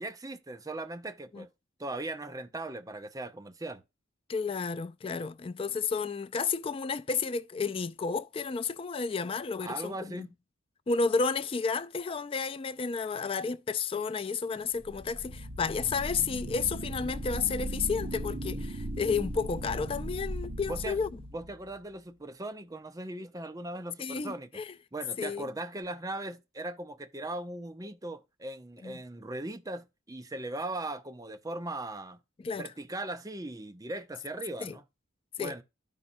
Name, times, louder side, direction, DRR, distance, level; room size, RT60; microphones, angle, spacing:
voice 1, 0.0-1.5 1.8-3.8 9.6-10.3 20.7-21.0 21.3-24.6 24.9-32.2 32.6-34.8 35.4-35.6, right 2 dB, 15° right, 0.7 m, -39 dB
voice 2, 4.3-10.3 10.9-21.1 24.0-24.7 25.2-25.5 28.8-28.9 32.4-32.7 34.6-34.8 35.4-35.5, left 5 dB, 25° left, 0.3 m, -32 dB
sound 1, 14.7-21.8, right 1 dB, 45° right, 1.1 m, -38 dB
13.0 x 5.4 x 2.5 m
head